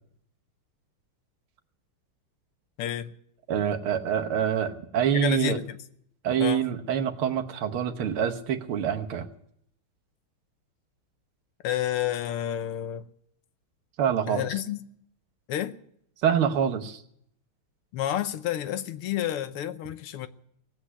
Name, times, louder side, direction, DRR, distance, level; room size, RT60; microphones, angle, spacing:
voice 1, 2.8-3.1 5.1-5.8 6.4-6.7 11.6-13.1 14.3-14.8 15.5-15.7 17.9-20.3, left 11 dB, 90° left, 1.8 m, -30 dB
voice 2, 3.5-5.6 6.2-9.3 14.0-14.5 16.2-17.0, right 8 dB, 75° right, 2.0 m, -26 dB
18.0 x 8.3 x 9.8 m
omnidirectional pair, 2.4 m